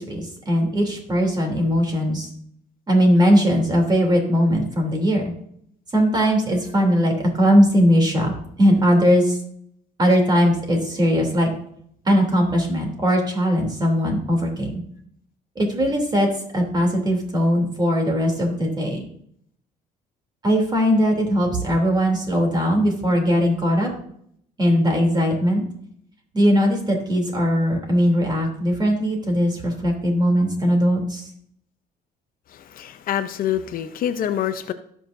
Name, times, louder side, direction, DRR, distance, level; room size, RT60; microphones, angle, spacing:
voice 1, 0.0-2.3 2.9-5.3 5.9-8.3 8.6-9.4 10.0-11.5 12.0-14.8 15.5-19.1 20.4-23.9 24.6-25.6 26.3-31.3, equal, 25° right, 1 dB, 3.1 m, -19 dB
voice 2, 32.5-34.7, left 10 dB, 55° left, 10 dB, 0.7 m, -26 dB
17.5 x 6.3 x 2.7 m, 0.68 s
cardioid pair, 110°, 17 cm